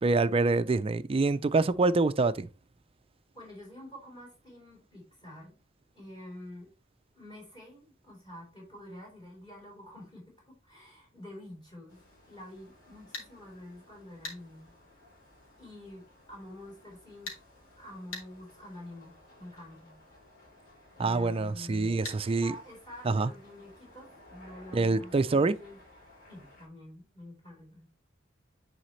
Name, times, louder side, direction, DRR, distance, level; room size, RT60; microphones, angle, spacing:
voice 1, 0.0-2.5 21.0-22.5 23.1-23.3 24.7-25.5, right 3 dB, 30° right, 0.4 m, -26 dB
voice 2, 3.3-5.6 5.9-6.7 7.1-12.0 12.3-14.7 15.6-17.4 17.8-20.0 20.9-22.0 22.2-25.8 26.3-27.9, left 1 dB, 20° left, 3.9 m, -48 dB
sound 1, 11.9-26.7, left 1 dB, 45° left, 4.6 m, -58 dB
sound 2, 13.1-13.3 14.2-14.4 17.3-17.4 18.1-18.3 22.0-22.2, left 3 dB, 80° left, 3.1 m, -39 dB
10.0 x 4.9 x 3.2 m
head